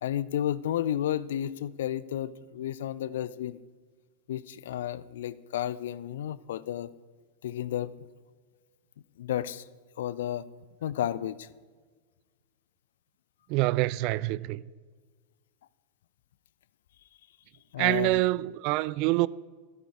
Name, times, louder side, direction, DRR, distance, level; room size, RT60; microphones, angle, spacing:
voice 1, 0.0-3.6 4.3-6.9 7.4-7.9 9.2-9.7 10.0-10.5 10.8-11.5 17.7-18.2, left 11 dB, 60° left, 0.4 m, -32 dB
voice 2, 13.5-14.6 17.8-19.3, right 20 dB, 45° right, 0.3 m, -26 dB
13.0 x 12.5 x 4.7 m
figure-of-eight pair, 90°, 0 cm